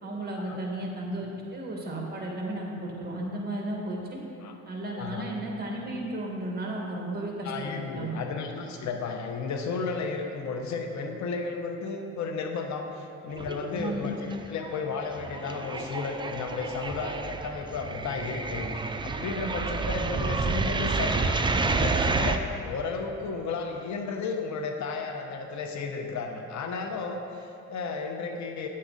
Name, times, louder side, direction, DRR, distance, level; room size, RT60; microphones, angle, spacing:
voice 1, 0.0-4.2 4.7-8.2 13.7-14.2 19.4-19.7, right 1 dB, 30° right, -1 dB, 1.9 m, -34 dB
voice 2, 4.9-5.3 7.4-28.7, left 4 dB, 70° left, 4 dB, 0.9 m, -33 dB
sound 1, 13.4-14.0 14.3-22.4, right 3 dB, 15° right, 0.4 m, -29 dB
10.0 x 7.5 x 4.0 m, 2.9 s
cardioid pair, 90°, 30 cm